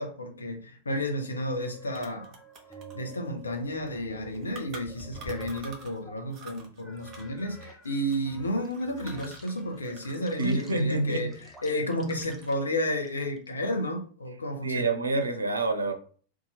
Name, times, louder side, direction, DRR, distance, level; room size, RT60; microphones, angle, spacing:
voice 1, 0.0-2.3 2.9-11.3 11.6-14.9, equal, 75° left, 3 dB, 0.6 m, -32 dB
sound 1, 1.3-6.3 6.8-13.5, right 2 dB, 5° right, 0.7 m, -49 dB
sound 2, 1.3-1.4 1.6-6.0 6.3-10.3 10.6-11.7 12.1-12.7, right 3 dB, 35° right, 1.0 m, -49 dB
voice 2, 10.4-11.3 14.6-15.9, right 3 dB, 75° right, 7 dB, 0.5 m, -27 dB
2.7 x 2.3 x 4.1 m, 0.43 s
figure-of-eight pair, 90°, 0 cm